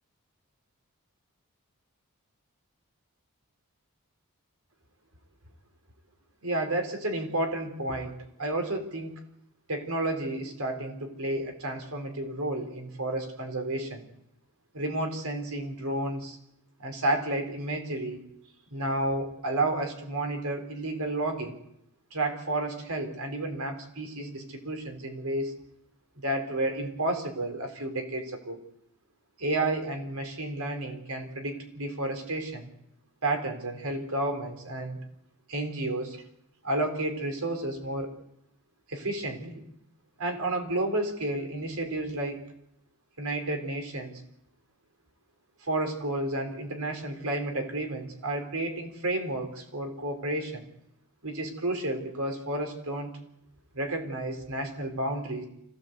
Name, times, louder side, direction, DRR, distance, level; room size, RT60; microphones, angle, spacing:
voice 1, 6.4-9.2 9.7-14.0 14.7-16.4 16.8-18.2 18.7-21.6 22.1-25.5 26.2-28.6 29.4-32.7 33.2-35.0 35.5-36.2 36.6-38.1 38.9-39.6 40.2-42.4 43.2-44.2 45.6-50.7 51.2-53.1 53.7-55.4, right 2 dB, 75° right, 4 dB, 4.2 m, -31 dB
25.0 x 16.5 x 8.2 m, 0.79 s
head